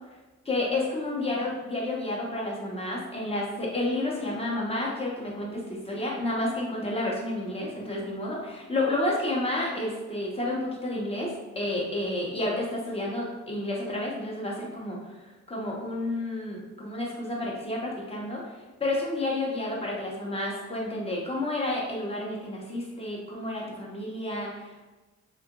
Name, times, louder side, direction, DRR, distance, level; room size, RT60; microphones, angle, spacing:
voice 1, 0.4-15.1 15.5-24.9, left 1 dB, 20° left, -3 dB, 1.0 m, -30 dB
2.8 x 2.5 x 3.8 m, 1.2 s
cardioid pair, 90°, 30 cm